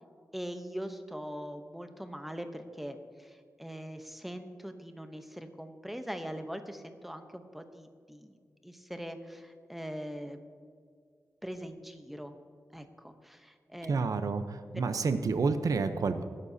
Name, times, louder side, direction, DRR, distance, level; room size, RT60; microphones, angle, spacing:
voice 1, 0.3-8.4 8.6-10.4 11.4-12.3 12.7-13.9 14.7-14.9, equal, 5° right, 7 dB, 0.8 m, -42 dB
voice 2, 13.9-16.2, right 4 dB, 80° right, 10 dB, 0.7 m, -29 dB
18.5 x 10.5 x 2.8 m, 2.1 s
wide cardioid pair, 135°, 6 cm